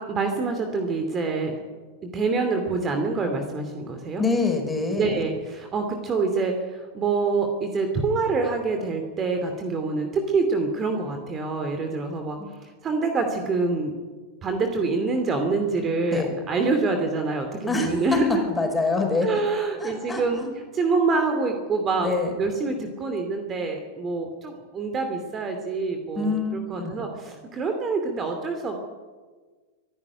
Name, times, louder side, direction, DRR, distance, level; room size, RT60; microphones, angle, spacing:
voice 1, 0.0-1.6 2.0-4.2 4.9-13.9 14.4-18.4 19.2-20.4 20.7-22.1 22.4-28.8, right 3 dB, 25° right, 5 dB, 2.6 m, -26 dB
voice 2, 4.2-5.2 12.4-12.5 16.1-16.3 17.7-18.2 18.5-19.3 19.8-20.5 22.0-22.3 26.2-27.0, left 3 dB, 10° left, 3 dB, 5.6 m, -26 dB
25.0 x 11.5 x 9.6 m, 1.4 s
figure-of-eight pair, 90°, 0 cm